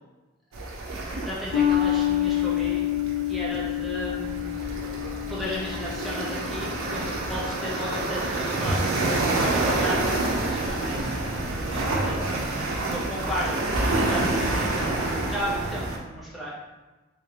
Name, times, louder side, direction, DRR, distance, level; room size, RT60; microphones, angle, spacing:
sound 1, 0.5-16.0, right 2 dB, 90° right, 0.6 m, -28 dB
voice 1, 1.1-2.8 3.3-4.8 5.3-7.0 7.3-11.1 11.6-16.5, equal, ahead, -7 dB, 0.7 m, -35 dB
sound 2, 1.5-8.3, left 12 dB, 80° left, 1.4 m, -28 dB
3.5 x 2.6 x 3.2 m, 1.2 s
head